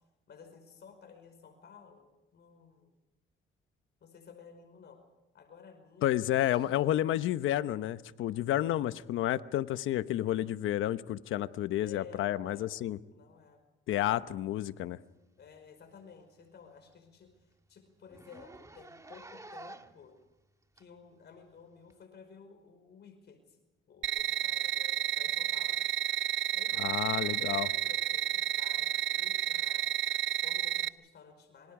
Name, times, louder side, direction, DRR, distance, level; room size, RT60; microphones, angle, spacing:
voice 1, 0.3-2.9 4.0-5.0 5.3-6.7 11.8-12.7 13.1-13.6 15.4-20.2 20.7-23.6 23.9-25.8 26.5-31.7, left 6 dB, 60° left, 6 dB, 5.0 m, -54 dB
voice 2, 6.0-13.0 13.9-15.0 26.8-27.7, left 13 dB, 85° left, 13 dB, 1.0 m, -30 dB
Zipper (clothing), 15.4-15.6 16.0-16.1 16.4-16.5 16.9-17.0 17.2-17.4 18.1-20.0 20.8-20.9 21.9-22.0, right 2 dB, 15° right, 1.6 m, -50 dB
sound 1, 24.0-30.9, right 12 dB, 70° right, 0.8 m, -31 dB
27.0 x 26.0 x 5.0 m, 1.0 s
cardioid pair, 90°, 20 cm